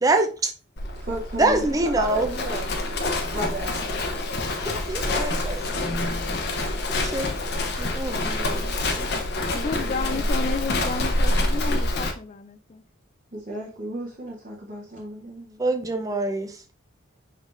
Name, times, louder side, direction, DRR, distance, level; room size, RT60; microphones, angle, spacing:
voice 1, 0.0-0.5 1.4-2.3 4.9-5.7 6.5-7.3 7.8-9.1 15.6-16.6, right 2 dB, 15° right, 0.5 m, -25 dB
Livestock farm animals working animals, 0.8-12.1, left 2 dB, 55° left, 0.7 m, -27 dB
voice 2, 0.9-1.7 1.9-2.7 3.3-3.8 9.5-10.3 13.3-15.7, right 1 dB, 40° right, 0.9 m, -34 dB
voice 3, 9.4-12.8, left 4 dB, 35° left, 0.3 m, -32 dB
5.3 x 3.8 x 2.5 m
head